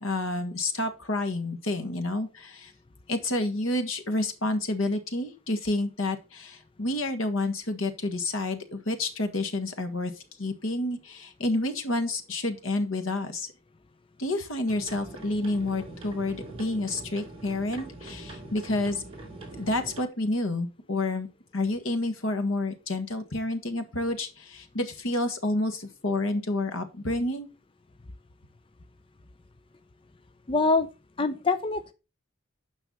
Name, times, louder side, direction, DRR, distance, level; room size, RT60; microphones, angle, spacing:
voice 1, 0.0-2.7 3.1-10.1 10.4-13.5 14.2-19.0 19.6-21.3 21.5-27.5, left 2 dB, 85° left, 7 dB, 1.7 m, -29 dB
sound 1, 14.7-20.0, right 2 dB, 30° right, 2.9 m, -43 dB
voice 2, 30.5-30.9 31.2-31.9, left 3 dB, 25° left, 11 dB, 0.5 m, -24 dB
9.1 x 5.7 x 5.4 m, 0.30 s
head